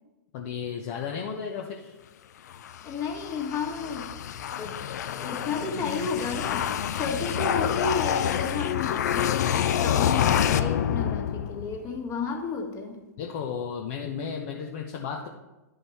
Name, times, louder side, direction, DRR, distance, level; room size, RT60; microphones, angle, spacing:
voice 1, 0.3-1.9 13.2-15.3, left 6 dB, 50° left, 1 dB, 0.9 m, -34 dB
sound 1, 2.5-11.9, left 9 dB, 65° left, 0.5 m, -27 dB
voice 2, 2.8-4.1 4.6-4.8 5.1-13.0, left 4 dB, 35° left, 1 dB, 1.8 m, -32 dB
10.5 x 5.2 x 4.2 m, 1.0 s
hypercardioid pair, 110°, 10 cm